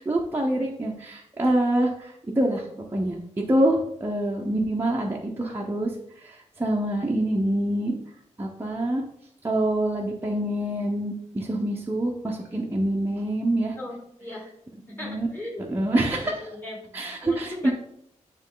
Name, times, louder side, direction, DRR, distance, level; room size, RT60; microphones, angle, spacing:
voice 1, 0.0-2.7 2.9-3.2 3.5-5.9 6.2-7.9 8.4-9.0 9.4-13.7 15.0-15.3 15.7-16.4 16.9-17.7, right 1 dB, 15° right, -2 dB, 0.7 m, -25 dB
voice 2, 13.8-14.5 14.9-15.7 16.2-17.7, left 1 dB, 15° left, -4 dB, 2.5 m, -38 dB
9.5 x 3.2 x 3.8 m, 0.72 s
wide cardioid pair, 125°, 12 cm